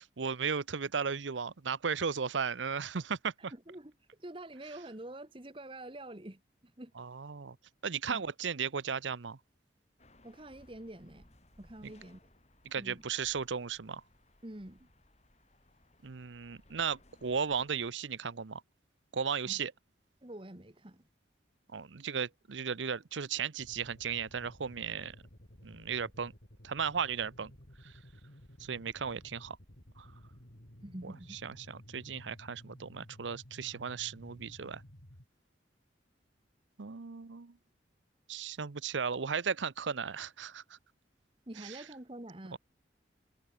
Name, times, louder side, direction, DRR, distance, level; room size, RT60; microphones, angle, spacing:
voice 1, 0.0-3.5 7.0-7.6 7.8-9.4 11.8-11.9 12.7-14.0 16.0-18.6 19.1-19.7 21.7-25.2 25.6-26.3 26.6-27.5 27.8-27.9 28.6-29.6 30.0-30.1 31.0-31.1 31.4-34.8 36.8-37.5 38.3-40.6 41.6-41.8 42.5-42.6, right 6 dB, 90° right, 0.7 m, -35 dB
voice 2, 3.5-3.9 4.2-6.9 8.1-8.2 10.2-11.3 11.6-12.2 12.7-13.0 14.4-14.9 19.4-19.6 20.2-21.0 30.8-31.4 41.5-42.6, right 1 dB, 30° right, 1.6 m, -46 dB
sound 1, 10.0-17.9, left 1 dB, 35° left, 5.7 m, -63 dB
sound 2, 23.6-35.3, equal, 60° left, 4.2 m, -55 dB
head